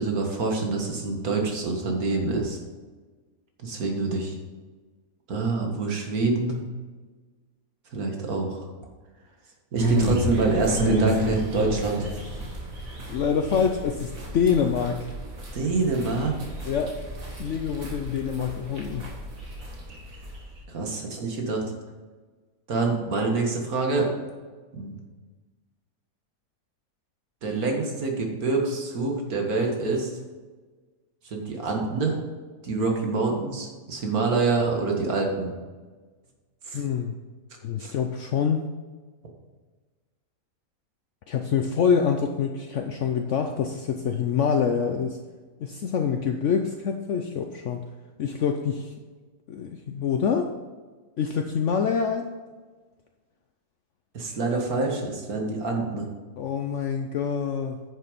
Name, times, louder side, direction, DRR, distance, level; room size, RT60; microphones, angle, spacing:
voice 1, 0.0-2.6 3.6-4.4 5.3-6.6 7.9-8.6 9.7-12.1 15.5-16.3 20.7-21.6 22.7-24.1 24.7-24.9 27.4-30.1 31.3-32.2 32.6-35.5 36.7-36.8 37.8-37.9 54.1-56.1, right 3 dB, 85° right, 1 dB, 2.2 m, -26 dB
sound 1, 9.8-20.6, right 1 dB, 65° right, 2.4 m, -31 dB
voice 2, 13.1-15.1 16.6-16.9 17.4-19.1 36.7-37.1 37.6-38.7 41.3-45.2 45.6-47.8 48.2-48.9 49.5-50.5 51.2-52.3 56.4-57.8, left 6 dB, 65° left, 5 dB, 0.9 m, -26 dB
10.0 x 6.7 x 5.2 m, 1.4 s
omnidirectional pair, 1.5 m